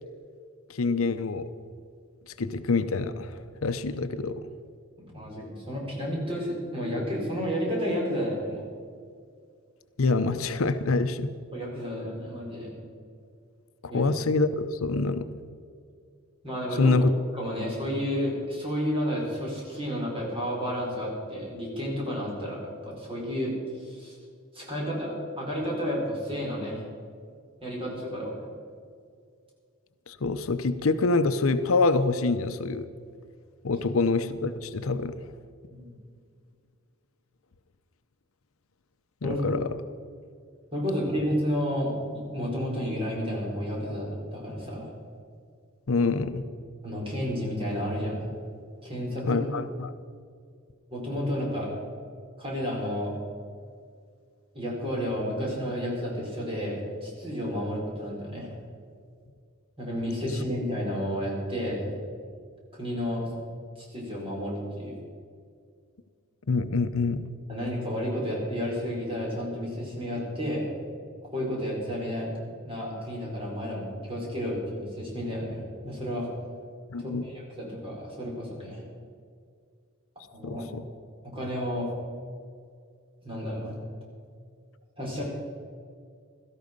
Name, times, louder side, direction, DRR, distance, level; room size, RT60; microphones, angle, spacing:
voice 1, 0.7-1.5 2.4-4.4 10.0-11.3 13.8-15.3 16.8-17.1 30.1-32.9 33.6-35.2 39.2-39.7 45.9-46.5 49.3-49.9 66.5-67.2 76.9-77.2 80.4-80.8, left 3 dB, 65° left, 10 dB, 0.7 m, -26 dB
voice 2, 5.1-8.6 11.5-12.7 13.9-14.0 16.4-17.0 17.3-24.2 24.5-26.8 27.6-28.5 35.7-35.8 39.2-39.4 40.7-44.9 46.8-48.3 48.8-49.4 50.9-51.7 52.4-53.1 54.5-58.5 59.8-61.9 62.8-63.3 63.8-64.9 67.5-70.7 71.3-76.3 77.0-78.8 80.3-80.6 81.2-81.9 83.2-83.7 85.0-85.2, equal, 25° right, -3 dB, 4.9 m, -31 dB
17.0 x 13.5 x 5.3 m, 2.2 s
head